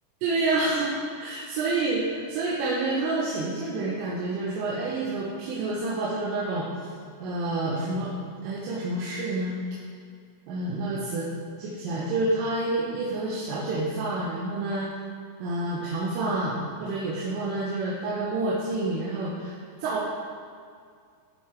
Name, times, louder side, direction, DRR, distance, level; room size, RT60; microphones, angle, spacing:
voice 1, 0.2-6.7 7.2-8.1 8.4-9.5 10.5-11.3 11.6-14.9 15.4-19.6 19.8-20.1, right 2 dB, 80° right, -6 dB, 3.6 m, -28 dB
14.5 x 6.0 x 3.6 m, 2.2 s
omnidirectional pair, 6.0 m